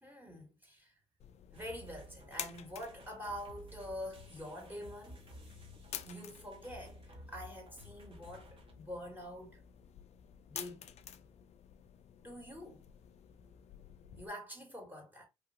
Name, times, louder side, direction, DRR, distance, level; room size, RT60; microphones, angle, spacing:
voice 1, 0.0-1.0 1.5-5.2 6.0-9.6 10.5-10.9 12.2-12.9 14.2-15.3, equal, 15° right, 1.3 m, -46 dB
sound 1, 1.2-14.3, left 9 dB, 50° left, 0.4 m, -51 dB
sound 2, 1.5-8.7, equal, 40° right, 1.1 m, -55 dB
3.1 x 2.4 x 2.6 m
supercardioid pair, 75°, 14 cm